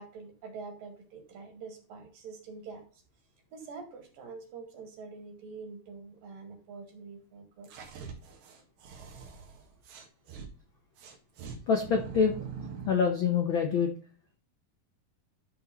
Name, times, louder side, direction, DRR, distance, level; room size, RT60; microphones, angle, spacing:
voice 1, 0.0-3.0 3.5-7.7, right 4 dB, 70° right, 3 dB, 4.0 m, -45 dB
sound 1, 7.6-10.5 11.0-13.0, right 6 dB, 90° right, 3.6 m, -43 dB
voice 2, 11.7-12.5 12.9-13.9, left 6 dB, 85° left, 4 dB, 1.1 m, -26 dB
13.0 x 4.4 x 4.1 m, 0.38 s
omnidirectional pair, 4.1 m